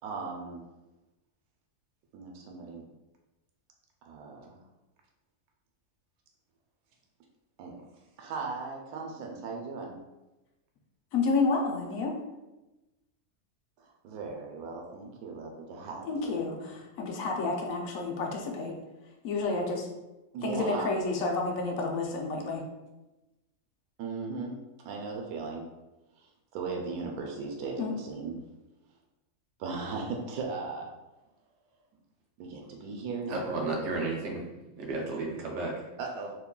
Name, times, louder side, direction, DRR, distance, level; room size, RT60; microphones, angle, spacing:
voice 1, 0.0-0.6 2.1-2.8 4.0-4.6 7.6-7.8 8.2-9.9 13.8-16.5 20.3-20.9 24.0-24.5 24.8-25.7 26.2-26.3 26.5-28.4 29.6-30.9 32.4-33.4 36.0-36.3, right 4 dB, 85° right, 0 dB, 1.1 m, -37 dB
voice 2, 11.1-12.2 16.0-18.7 19.2-19.9 20.4-22.6 27.8-27.9, left 3 dB, 70° left, 1 dB, 1.0 m, -30 dB
voice 3, 33.3-34.4 34.8-35.8, right 3 dB, 65° right, -1 dB, 0.8 m, -32 dB
3.6 x 2.9 x 2.3 m, 1.0 s
omnidirectional pair, 1.5 m